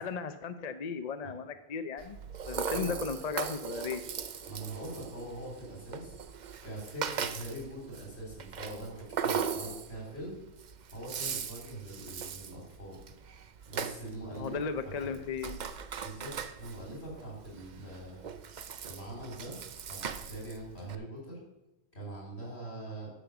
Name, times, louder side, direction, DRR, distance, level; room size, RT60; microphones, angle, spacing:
voice 1, 0.0-2.2 2.5-4.0 14.3-15.6, left 5 dB, 45° left, 10 dB, 0.7 m, -36 dB
Rattle (instrument), 2.0-21.0, right 7 dB, 50° right, 0.7 m, -39 dB
voice 2, 2.7-3.1 4.5-6.2 6.6-10.3 10.9-13.0 13.7-14.6 14.8-15.2 16.0-18.3 18.8-19.6 19.9-21.4 21.9-23.1, right 1 dB, 85° left, -3 dB, 4.6 m, -42 dB
10.0 x 6.5 x 7.0 m, 0.97 s
omnidirectional pair, 1.1 m